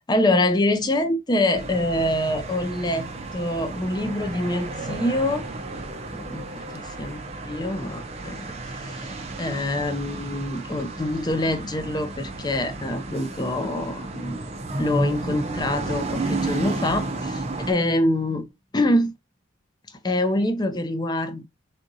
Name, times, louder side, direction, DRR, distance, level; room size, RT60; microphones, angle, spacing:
voice 1, 0.1-5.5 6.1-6.4 7.0-14.4 14.8-18.5 18.7-19.1 20.0-21.4, left 1 dB, 20° left, 0.4 m, -25 dB
sound 1, 1.6-17.7, right 2 dB, 30° right, 0.5 m, -32 dB
3.6 x 2.6 x 2.6 m
head